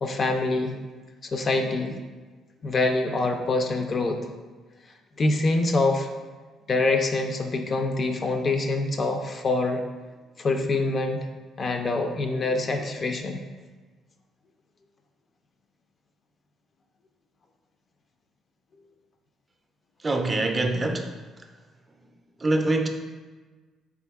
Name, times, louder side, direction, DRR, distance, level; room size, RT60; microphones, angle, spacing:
voice 1, 0.0-0.8 1.3-1.9 2.6-4.2 5.2-6.1 6.7-9.8 10.4-11.2 11.6-13.4, left 2 dB, 45° left, 5 dB, 0.4 m, -25 dB
voice 2, 20.0-21.5 22.4-22.9, right 2 dB, 25° right, 4 dB, 0.4 m, -25 dB
3.8 x 3.5 x 2.3 m, 1.3 s
cardioid pair, 85°, 0 cm